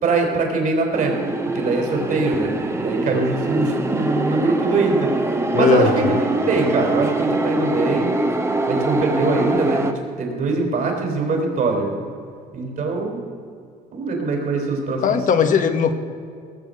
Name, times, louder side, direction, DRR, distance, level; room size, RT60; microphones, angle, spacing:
voice 1, 0.0-1.2 1.5-5.1 5.5-8.1 8.7-9.8 10.2-11.9 12.5-13.2 13.9-15.2, right 3 dB, 55° right, 1 dB, 4.1 m, -22 dB
sound 1, 0.9-9.9, right 2 dB, 15° right, 1.0 m, -24 dB
voice 2, 5.5-6.2 15.0-16.0, left 6 dB, 50° left, 7 dB, 1.1 m, -18 dB
19.0 x 7.6 x 6.6 m, 2.3 s
cardioid pair, 110°, 17 cm